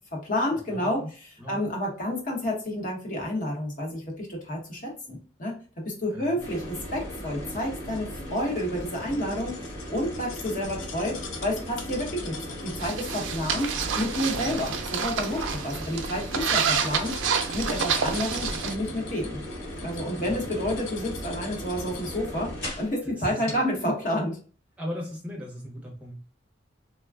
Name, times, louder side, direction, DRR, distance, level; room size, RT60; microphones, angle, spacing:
voice 1, 0.1-9.6 9.9-12.4 12.6-17.2 17.5-19.4 19.8-24.4, left 1 dB, 45° left, -1 dB, 0.9 m, -30 dB
voice 2, 0.7-1.1 1.4-1.6 6.1-6.4 14.3-14.6 20.1-20.7 23.0-23.6 24.8-26.2, equal, 10° right, -2 dB, 0.6 m, -38 dB
sound 1, 6.4-22.9 23.5-23.6, equal, 70° left, 1.3 m, -37 dB
sound 2, 7.2-22.4 22.7-22.8, left 6 dB, 85° left, 0.5 m, -44 dB
sound 3, 12.8-18.7, right 6 dB, 80° right, 0.4 m, -29 dB
3.3 x 2.2 x 2.3 m, 0.38 s
head